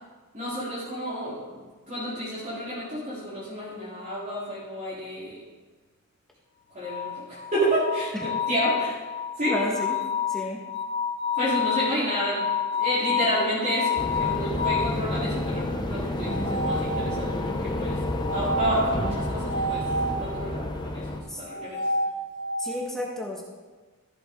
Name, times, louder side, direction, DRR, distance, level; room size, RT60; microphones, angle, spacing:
voice 1, 0.3-5.4 6.7-9.0 9.4-9.6 11.3-12.4 12.7-18.0 18.3-19.8 20.2-21.8, equal, 35° right, -10 dB, 3.9 m, -30 dB
sound 1, 6.8-14.9 16.2-17.5 18.2-20.2 21.4-22.8, left 4 dB, 55° left, 1.5 m, -29 dB
voice 2, 9.4-10.0 10.3-10.6 21.3-21.4 22.6-23.4, left 1 dB, ahead, -3 dB, 1.5 m, -31 dB
sound 2, 14.0-21.2, left 2 dB, 20° left, 0.9 m, -29 dB
14.0 x 7.8 x 3.8 m, 1.3 s
head